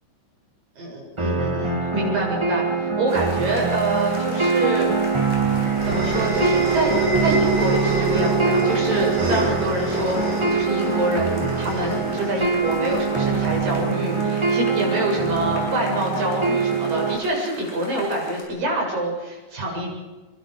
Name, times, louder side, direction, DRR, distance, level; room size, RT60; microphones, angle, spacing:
voice 1, 0.8-4.9 5.9-6.9 7.2-19.9, right 1 dB, 75° right, -1 dB, 9.1 m, -26 dB
sound 1, 1.2-17.2, right 5 dB, 15° right, 1.0 m, -23 dB
sound 2, 3.1-18.4, left 1 dB, 15° left, 7.7 m, -40 dB
sound 3, 4.9-13.7, right 1 dB, 50° right, 6.2 m, -27 dB
27.0 x 24.5 x 5.0 m, 1.2 s
omnidirectional pair, 4.0 m